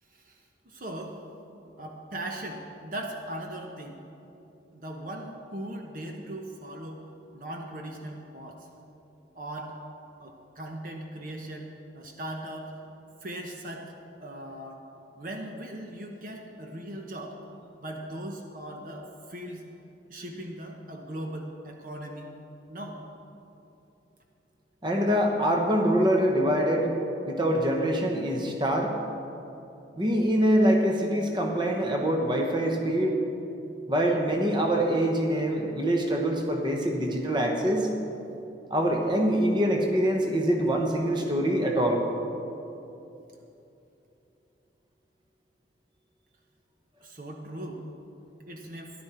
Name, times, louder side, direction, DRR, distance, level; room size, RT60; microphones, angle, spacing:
voice 1, 0.1-1.2 1.8-4.0 4.7-7.0 7.3-8.7 9.3-9.8 10.2-12.7 13.2-13.9 14.2-14.8 15.1-17.4 17.8-19.6 20.1-22.3 22.7-23.0 47.0-47.8 48.5-48.9, right 1 dB, 45° right, 2 dB, 0.9 m, -39 dB
voice 2, 24.8-26.9 27.3-29.0 30.0-33.2 33.9-37.9 38.7-42.0, equal, 25° right, 2 dB, 1.1 m, -24 dB
14.0 x 11.5 x 4.4 m, 2.9 s
head